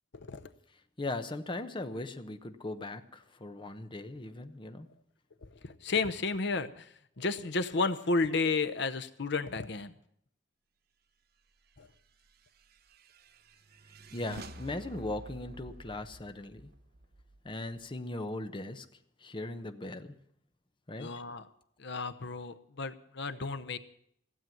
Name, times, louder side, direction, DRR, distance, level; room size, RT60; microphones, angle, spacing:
voice 1, 1.0-4.9 14.1-16.7 17.4-18.8 19.2-20.2 20.9-21.1, left 2 dB, 25° left, 9 dB, 0.9 m, -39 dB
voice 2, 5.6-6.9 7.2-9.9 11.8-11.9 21.0-21.5 21.8-23.8, left 3 dB, 65° left, 12 dB, 0.8 m, -32 dB
sound 1, 12.3-17.9, right 2 dB, 55° right, 0.9 m, -49 dB
16.0 x 7.6 x 9.1 m, 0.69 s
head